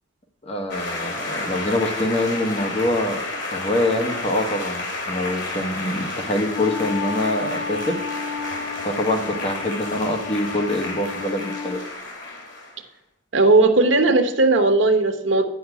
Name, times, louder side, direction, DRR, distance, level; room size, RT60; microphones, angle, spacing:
voice 1, 0.4-3.2 3.5-8.0 8.8-11.8, left 1 dB, 35° left, 4 dB, 1.3 m, -25 dB
sound 1, 0.7-12.8, left 2 dB, 85° left, 3.1 m, -31 dB
Wind instrument woodwind instrument, 6.3-11.7, left 4 dB, 60° left, 3.3 m, -32 dB
voice 2, 13.3-15.5, right 3 dB, 85° right, 7 dB, 1.1 m, -17 dB
10.5 x 5.6 x 8.1 m, 0.79 s
head